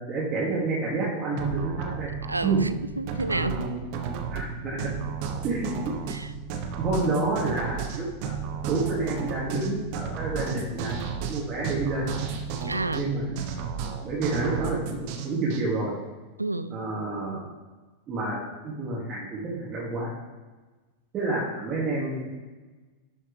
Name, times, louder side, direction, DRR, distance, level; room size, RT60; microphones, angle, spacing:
voice 1, 0.0-2.1 2.4-2.6 3.3-3.8 4.3-4.9 5.4-5.9 6.8-8.3 8.7-10.9 11.3-12.1 12.9-13.5 14.0-15.9 16.7-17.4 18.1-18.4 18.6-20.1 21.1-22.3, right 3 dB, 30° right, -8 dB, 2.5 m, -29 dB
sound 1, 1.4-15.6, right 6 dB, 45° right, 1.1 m, -33 dB
voice 2, 2.3-3.7 6.1-6.3 12.6-13.1 16.4-16.8, right 2 dB, 85° right, 14 dB, 0.4 m, -30 dB
11.5 x 6.2 x 3.4 m, 1.2 s
figure-of-eight pair, 90°, 0 cm